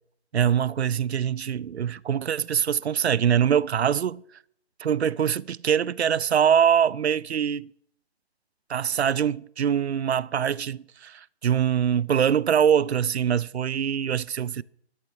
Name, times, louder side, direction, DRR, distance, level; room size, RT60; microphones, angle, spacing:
voice 1, 0.3-4.2 4.8-7.7 8.7-14.6, right 8 dB, 75° right, 0.5 m, -23 dB
12.0 x 9.4 x 5.7 m
hypercardioid pair, 175°, 33 cm